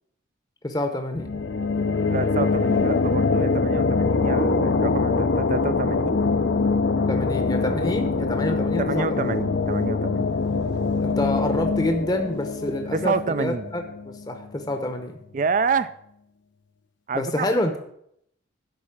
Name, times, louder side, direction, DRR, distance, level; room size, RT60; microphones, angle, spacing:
voice 1, 0.6-1.3 7.1-9.3 11.0-15.2 17.1-17.8, left 1 dB, 20° left, 5 dB, 0.8 m, -27 dB
sound 1, 1.1-14.5, left 4 dB, 70° left, 0.6 m, -24 dB
voice 2, 2.1-6.2 8.8-10.3 12.9-13.7 15.3-15.9 17.1-17.5, right 5 dB, 40° right, 15 dB, 0.4 m, -28 dB
11.0 x 4.2 x 7.2 m, 0.72 s
head